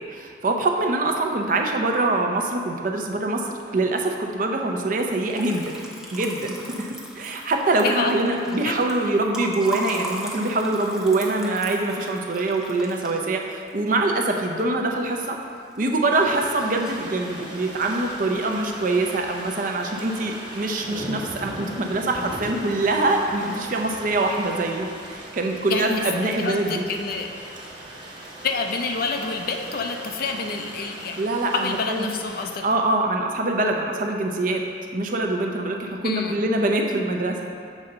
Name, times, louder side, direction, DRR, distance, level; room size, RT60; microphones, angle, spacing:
voice 1, 0.1-5.7 6.1-15.4 15.8-26.8 31.2-32.1 32.6-34.6 34.9-37.4, right 2 dB, 45° right, 2 dB, 0.6 m, -24 dB
Liquid, 4.9-15.1 15.4-16.1 16.3-17.1, equal, 5° right, 0.6 m, -38 dB
voice 2, 7.8-8.2 8.5-8.8 25.7-27.3 28.4-31.2 31.5-32.7 36.0-36.4, left 4 dB, 50° left, 4 dB, 0.5 m, -28 dB
sound 1, 16.1-32.6, right 1 dB, 25° right, 1.3 m, -39 dB
7.2 x 5.4 x 3.9 m, 2.3 s
head